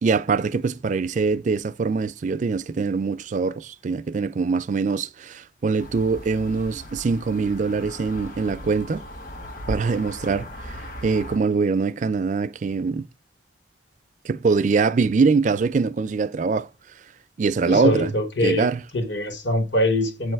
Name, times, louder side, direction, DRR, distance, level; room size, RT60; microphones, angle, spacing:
voice 1, 0.0-9.0 9.7-13.1 14.2-16.7 17.4-18.1 18.4-18.8, right 4 dB, 40° right, 0.4 m, -23 dB
sound 1, 5.8-11.4, equal, 50° left, 1.2 m, -37 dB
voice 2, 17.6-18.7 18.9-20.3, left 1 dB, 75° left, 1.5 m, -23 dB
8.2 x 3.1 x 4.5 m
head